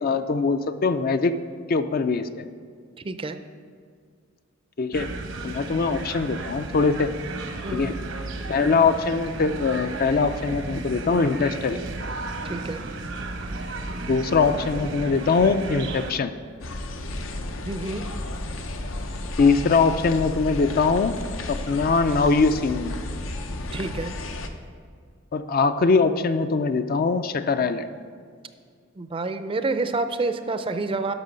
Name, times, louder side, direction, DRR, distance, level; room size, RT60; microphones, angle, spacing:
voice 1, 0.0-1.4 1.7-2.4 4.8-5.1 5.4-7.1 7.7-7.9 8.5-11.8 14.1-16.3 19.4-21.1 21.5-22.9 25.3-27.8, left 4 dB, 50° left, 10 dB, 0.4 m, -22 dB
voice 2, 3.0-3.4 7.6-8.0 12.4-12.8 17.6-18.1 23.7-24.1 29.0-31.1, right 3 dB, 25° right, 9 dB, 0.4 m, -28 dB
sound 1, 4.9-16.1, right 2 dB, 75° right, 1.0 m, -34 dB
sound 2, 16.6-24.5, left 1 dB, 80° left, 0.7 m, -33 dB
11.0 x 6.2 x 5.1 m, 2.1 s
head